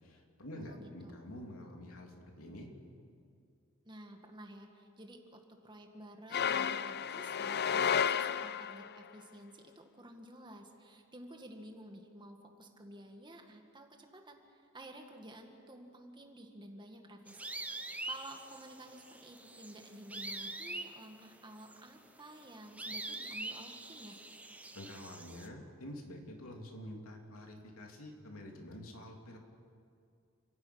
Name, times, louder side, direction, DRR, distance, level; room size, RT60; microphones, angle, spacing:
voice 1, 0.0-2.7 24.7-29.4, left 1 dB, 90° left, 1 dB, 3.2 m, -48 dB
voice 2, 0.5-1.1 3.9-17.5 18.0-24.2, right 1 dB, 20° right, 3 dB, 2.0 m, -52 dB
sound 1, 6.3-8.9, left 7 dB, 50° left, 0.5 m, -32 dB
sound 2, 17.3-25.5, right 2 dB, 5° right, 0.9 m, -44 dB
29.5 x 11.5 x 8.7 m, 2.4 s
head